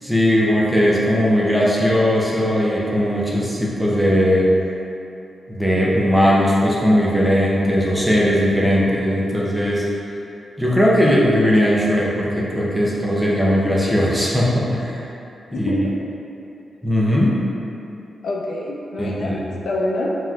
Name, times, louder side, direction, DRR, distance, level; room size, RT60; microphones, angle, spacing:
voice 1, 0.0-4.5 5.5-9.9 10.6-15.1 15.5-15.8 16.8-17.4 19.0-19.4, equal, 5° right, -5 dB, 0.6 m, -18 dB
voice 2, 15.5-15.9 18.2-19.4 19.6-20.2, left 2 dB, 85° left, -3 dB, 0.5 m, -25 dB
5.4 x 3.0 x 2.4 m, 2.8 s
wide cardioid pair, 135°, 0 cm